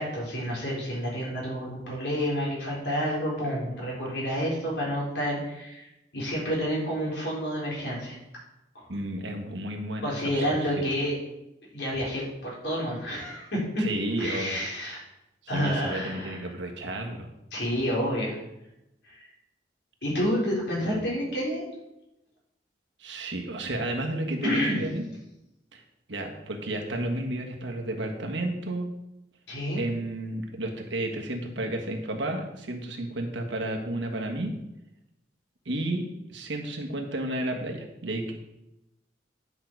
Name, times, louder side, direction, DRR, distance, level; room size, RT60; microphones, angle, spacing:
voice 1, 0.0-8.2 8.7-8.9 10.0-11.2 11.7-13.8 14.2-15.0 15.5-16.5 17.5-18.4 19.1-19.3 20.0-21.7 24.4-24.8 29.5-29.8, equal, 70° left, -4 dB, 4.0 m, -29 dB
voice 2, 8.9-10.8 13.8-14.6 15.5-17.3 23.0-25.0 25.7-25.8 26.1-28.9 29.7-34.5 35.6-38.3, right 1 dB, 85° right, 2 dB, 1.5 m, -32 dB
10.5 x 5.8 x 4.6 m, 0.90 s
head